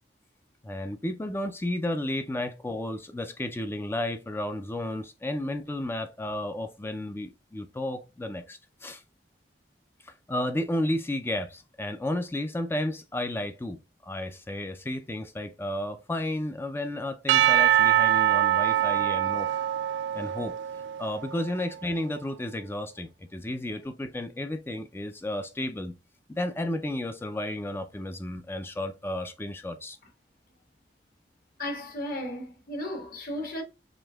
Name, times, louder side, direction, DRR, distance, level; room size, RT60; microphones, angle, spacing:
voice 1, 0.6-9.0 10.0-19.5 20.1-20.5 21.0-25.9 26.3-30.0, left 1 dB, 15° left, 0.4 m, -32 dB
Percussion / Church bell, 17.3-21.5, right 12 dB, 70° right, 0.3 m, -24 dB
voice 2, 31.6-33.6, left 1 dB, 55° left, 1.4 m, -34 dB
5.0 x 3.5 x 2.3 m
head